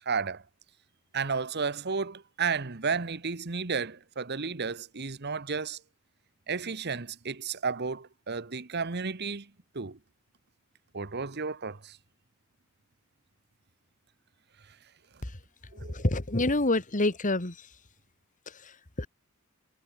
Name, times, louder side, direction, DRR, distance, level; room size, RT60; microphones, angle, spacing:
voice 1, 0.1-0.4 1.1-5.8 6.5-9.5 9.7-10.0 10.9-12.0 15.7-15.9, right 5 dB, 55° right, 1.2 m, -32 dB
voice 2, 15.9-17.5 19.0-19.1, left 2 dB, 40° left, 1.9 m, -26 dB
head